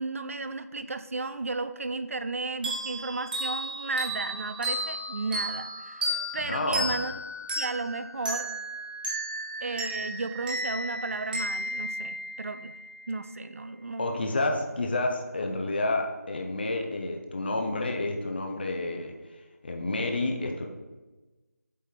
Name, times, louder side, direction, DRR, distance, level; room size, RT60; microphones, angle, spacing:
voice 1, 0.0-7.1 7.6-8.5 9.6-12.7 13.1-14.3, right 3 dB, 50° right, 11 dB, 0.4 m, -34 dB
sound 1, 2.6-12.9, right 1 dB, 30° right, 1.7 m, -34 dB
voice 2, 6.4-6.9 14.0-19.1 19.6-20.7, left 2 dB, 35° left, 3 dB, 0.6 m, -29 dB
8.2 x 3.4 x 4.4 m, 1.2 s
figure-of-eight pair, 170°, 9 cm